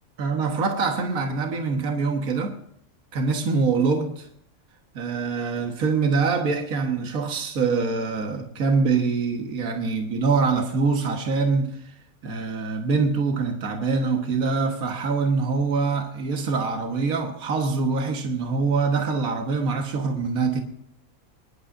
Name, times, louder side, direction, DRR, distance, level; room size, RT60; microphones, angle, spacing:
voice 1, 0.2-2.6 3.1-4.3 4.9-12.0 12.2-20.6, right 4 dB, 70° right, 1.8 m, -24 dB
25.0 x 11.5 x 2.6 m
omnidirectional pair, 1.6 m